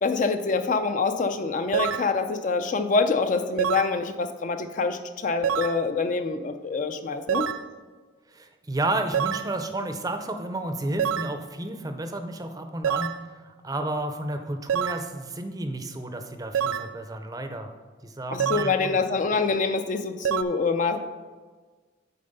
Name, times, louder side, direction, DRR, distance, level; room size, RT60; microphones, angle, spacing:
voice 1, 0.0-7.5 18.3-21.1, left 4 dB, 40° left, 8 dB, 0.4 m, -26 dB
sound 1, 1.7-2.1 3.6-4.0 5.4-5.8 7.3-7.7 9.1-9.5 11.0-11.4 12.8-13.2 14.7-15.1 16.5-16.9 18.4-18.8 20.3-20.4, right 8 dB, 85° right, 0.4 m, -26 dB
voice 2, 8.3-17.7 18.0-19.0, right 1 dB, 20° right, 6 dB, 0.5 m, -32 dB
8.7 x 4.3 x 5.4 m, 1.4 s
head